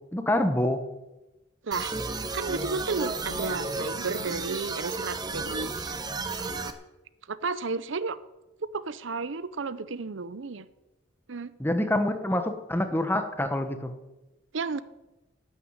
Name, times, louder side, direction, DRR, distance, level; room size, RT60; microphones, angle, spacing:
voice 1, 0.1-0.8 11.6-13.9, left 1 dB, 10° left, 8 dB, 1.1 m, -26 dB
voice 2, 1.6-1.9 2.3-6.0 6.4-6.7 7.3-8.2 8.7-10.7 11.3-11.5 14.5-14.8, right 4 dB, 70° right, 15 dB, 0.7 m, -33 dB
sound 1, 1.7-6.7, right 3 dB, 20° right, 1.0 m, -33 dB
12.0 x 9.2 x 9.6 m, 1.0 s
head